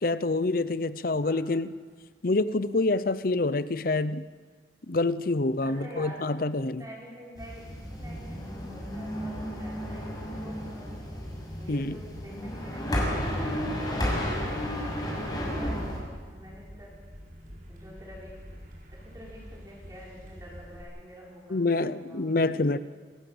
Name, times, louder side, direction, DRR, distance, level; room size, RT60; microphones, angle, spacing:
voice 1, 0.0-1.7 2.2-4.2 4.9-6.8 11.7-12.0 21.5-22.8, left 2 dB, 50° left, 15 dB, 0.7 m, -26 dB
voice 2, 5.6-6.2 6.5-10.9 11.6-16.9 17.7-18.6 18.9-22.2, equal, 20° right, -5 dB, 6.0 m, -47 dB
sound 1, 7.3-16.0, equal, 20° left, 6.0 m, -32 dB
sound 2, 14.0-20.8, equal, 50° right, 4.7 m, -47 dB
28.0 x 14.5 x 7.9 m, 1.5 s
head